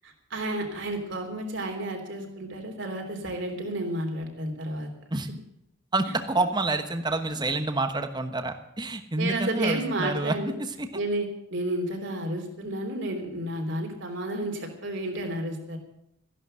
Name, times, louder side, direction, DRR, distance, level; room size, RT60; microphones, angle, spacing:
voice 1, 0.0-4.9 9.2-10.5 10.9-15.8, right 1 dB, 65° right, 3 dB, 3.3 m, -31 dB
voice 2, 5.9-10.9, right 2 dB, 20° right, 8 dB, 1.2 m, -28 dB
14.5 x 11.0 x 7.7 m, 0.80 s
head